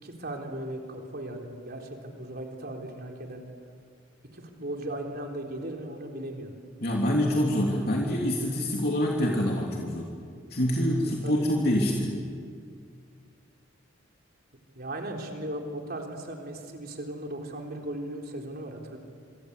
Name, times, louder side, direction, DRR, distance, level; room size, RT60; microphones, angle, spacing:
voice 1, 0.0-3.4 4.3-6.6 11.2-11.5 14.8-19.0, right 1 dB, 50° right, 2 dB, 3.8 m, -37 dB
voice 2, 6.8-10.1 10.5-12.1, equal, 50° left, -1 dB, 3.1 m, -26 dB
27.0 x 25.5 x 8.3 m, 2.1 s
head